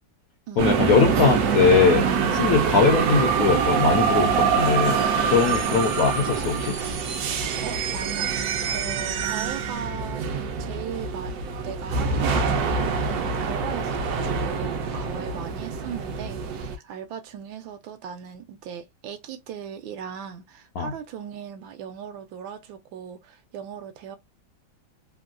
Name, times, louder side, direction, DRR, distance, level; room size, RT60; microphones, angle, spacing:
voice 1, 0.6-5.0 5.3-6.8 20.8-20.9, left 5 dB, 75° left, 0.8 m, -21 dB
sound 1, 0.6-16.8, right 6 dB, 70° right, 0.9 m, -25 dB
voice 2, 7.6-10.3 10.6-11.4 11.6-24.2, right 8 dB, 85° right, 1.4 m, -38 dB
3.4 x 2.2 x 2.4 m
omnidirectional pair, 2.0 m